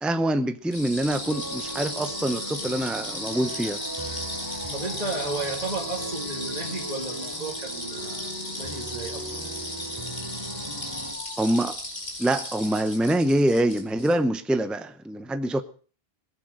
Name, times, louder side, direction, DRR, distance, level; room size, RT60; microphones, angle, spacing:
voice 1, 0.0-3.8 11.4-11.8 12.2-15.6, right 1 dB, ahead, 0.7 m, -25 dB
sound 1, 0.7-14.1, left 1 dB, 45° left, 3.0 m, -35 dB
sound 2, 1.1-11.1, right 1 dB, 20° right, 3.0 m, -38 dB
sound 3, 1.2-12.9, left 2 dB, 15° left, 6.2 m, -51 dB
voice 2, 4.7-9.3, right 3 dB, 40° right, 2.3 m, -34 dB
21.0 x 8.0 x 6.5 m
omnidirectional pair, 1.1 m